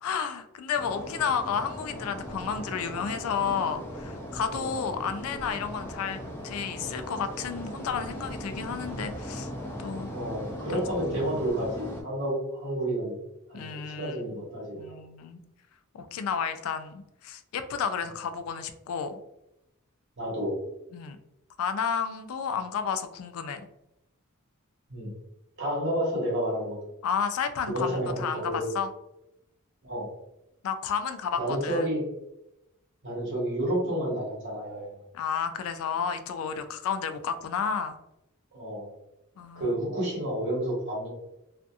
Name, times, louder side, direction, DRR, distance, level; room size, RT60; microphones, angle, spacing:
voice 1, 0.0-9.5 9.8-10.1 11.2-11.3 13.5-14.4 14.7-15.4 15.9-19.2 20.9-21.2 21.6-23.7 27.0-28.9 30.6-31.9 35.1-38.0 39.4-39.8, left 6 dB, 75° left, 9 dB, 0.3 m, -31 dB
sound 1, 0.7-12.0, equal, 10° left, 0.5 m, -38 dB
voice 2, 4.5-4.8 10.1-13.2 13.5-13.6 14.0-14.9 20.2-20.5 24.9-25.1 25.6-26.8 27.7-28.8 29.8-30.1 31.4-32.0 33.0-34.9 38.5-38.9 39.5-41.1, right 1 dB, 55° right, -4 dB, 1.2 m, -30 dB
2.6 x 2.5 x 2.3 m, 0.87 s
head